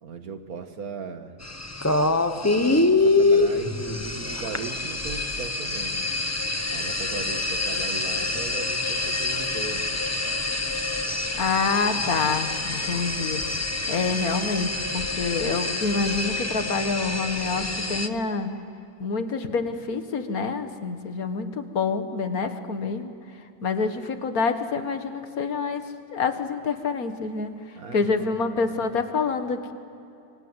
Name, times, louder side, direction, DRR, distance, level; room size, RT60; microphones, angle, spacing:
voice 1, 0.0-1.3 2.6-6.1 6.7-9.9 27.8-28.9, right 5 dB, 90° right, 8 dB, 2.0 m, -38 dB
sound 1, 1.4-18.1, left 2 dB, 15° left, 0.8 m, -26 dB
voice 2, 11.4-13.4 13.9-18.5 19.0-23.1 23.6-25.8 26.1-27.5 27.9-29.7, left 4 dB, 85° left, 8 dB, 2.1 m, -27 dB
29.5 x 24.0 x 8.1 m, 2.8 s
omnidirectional pair, 1.5 m